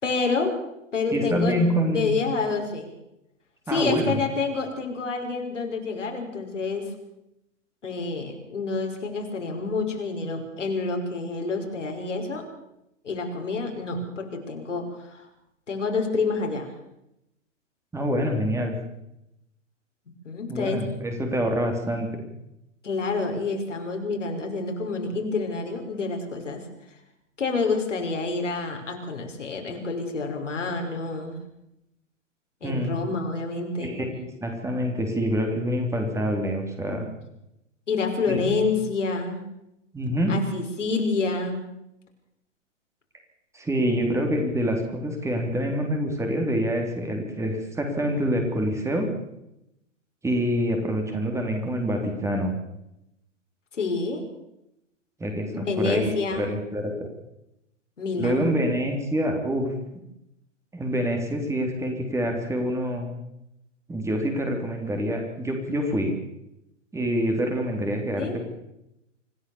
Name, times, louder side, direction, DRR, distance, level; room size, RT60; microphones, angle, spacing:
voice 1, 0.0-0.6 0.9-2.9 3.7-6.9 7.8-12.5 13.0-15.3 15.7-16.7 20.2-20.9 22.8-26.6 27.4-31.4 32.6-33.9 36.9-37.0 37.9-39.4 40.3-41.6 53.7-54.2 55.5-56.5 58.0-58.6 68.1-68.4, left 4 dB, 70° left, 3 dB, 5.6 m, -28 dB
voice 2, 1.1-2.2 3.7-4.2 17.9-18.8 20.5-22.2 32.6-32.9 33.8-37.1 38.3-38.4 39.9-40.3 43.5-49.1 50.2-52.6 55.2-57.1 58.1-59.7 60.7-63.1 63.9-66.1 66.9-68.4, equal, 5° right, 2 dB, 3.7 m, -26 dB
26.0 x 16.0 x 7.2 m, 0.85 s
figure-of-eight pair, 115°, 38 cm